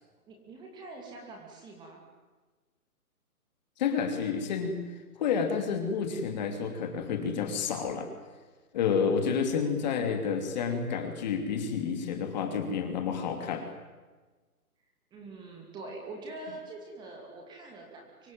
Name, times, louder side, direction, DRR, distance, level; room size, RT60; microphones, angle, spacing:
voice 1, 0.3-2.0 15.1-18.3, right 2 dB, 10° right, 1 dB, 2.6 m, -44 dB
voice 2, 3.8-4.8 5.2-8.1 8.7-13.7, left 6 dB, 30° left, 6 dB, 3.0 m, -30 dB
25.0 x 23.0 x 9.0 m, 1.3 s
hypercardioid pair, 155°, 46 cm